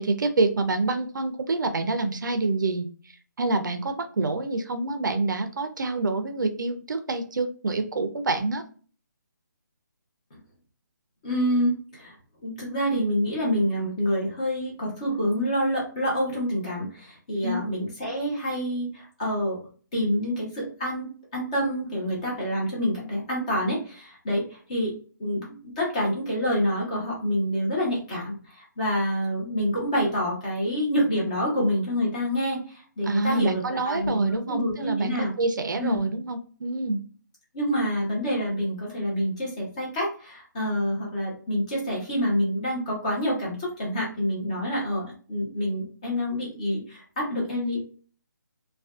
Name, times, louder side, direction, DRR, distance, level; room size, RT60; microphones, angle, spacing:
voice 1, 0.0-2.9 3.4-8.6 17.4-17.8 33.1-37.0, right 3 dB, 70° right, 8 dB, 0.5 m, -27 dB
voice 2, 11.2-12.1 12.4-19.6 19.9-24.4 24.7-24.9 25.2-35.3 35.8-36.0 37.5-47.8, equal, 20° left, -4 dB, 0.8 m, -27 dB
2.4 x 2.3 x 2.3 m, 0.41 s
hypercardioid pair, 170°, 11 cm